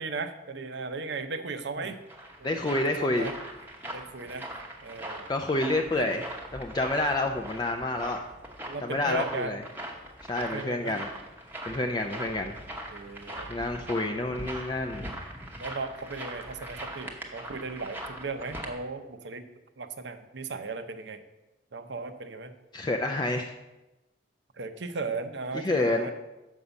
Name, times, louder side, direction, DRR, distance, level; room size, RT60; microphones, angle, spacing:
voice 1, 0.0-2.0 2.4-3.3 3.9-4.5 4.8-5.3 5.9-6.2 8.7-9.6 10.4-11.0 11.7-12.5 12.9-13.5 15.6-19.4 19.8-21.2 21.7-22.5 24.6-26.1, right 3 dB, 60° right, 9 dB, 0.6 m, -37 dB
sound 1, 1.7-18.7, right 1 dB, 10° right, 0.8 m, -41 dB
voice 2, 2.4-3.3 5.3-6.2 6.5-8.2 8.8-9.6 10.3-11.1 11.7-12.5 13.5-15.0 22.7-23.5 25.6-26.1, left 2 dB, 20° left, 4 dB, 0.4 m, -28 dB
6.2 x 5.4 x 7.0 m, 1.0 s
head